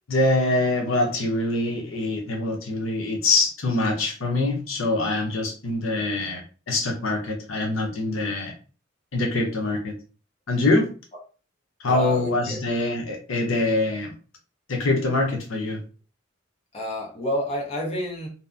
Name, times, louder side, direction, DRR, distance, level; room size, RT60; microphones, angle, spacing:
voice 1, 0.1-8.5 9.1-9.9 10.5-10.9 11.8-14.1 14.7-15.8, left 2 dB, 85° left, 0.7 m, -24 dB
voice 2, 11.9-12.6 16.7-18.3, left 1 dB, 30° left, 0.8 m, -29 dB
2.7 x 2.4 x 2.4 m
head